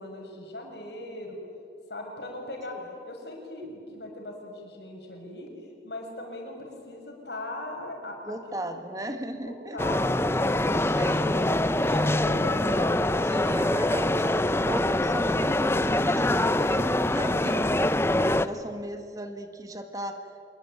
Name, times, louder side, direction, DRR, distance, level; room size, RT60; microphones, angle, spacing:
voice 1, 0.0-1.4 1.9-2.8 3.0-5.5 5.8-8.7 9.3-10.7 11.2-11.5 11.8-13.1, left 1 dB, 70° left, 1 dB, 6.6 m, -39 dB
voice 2, 8.2-9.8 10.6-11.4 13.3-14.3 14.6-17.7 18.1-20.1, right 1 dB, 20° right, 6 dB, 1.6 m, -36 dB
sound 1, 9.8-18.5, left 1 dB, 15° left, 0.6 m, -24 dB
26.5 x 22.0 x 9.2 m, 2.4 s
head